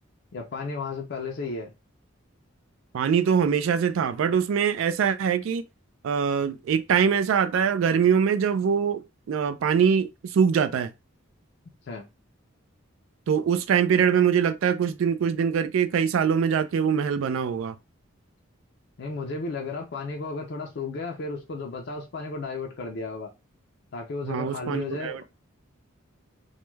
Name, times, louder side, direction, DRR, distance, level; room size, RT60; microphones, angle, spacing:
voice 1, 0.3-1.7 11.9-12.0 19.0-23.3 23.9-25.2, left 3 dB, 55° left, 0.4 m, -33 dB
voice 2, 2.9-5.6 6.0-10.9 13.3-17.8 24.2-25.2, right 7 dB, 70° right, 0.3 m, -23 dB
2.2 x 2.2 x 3.0 m
head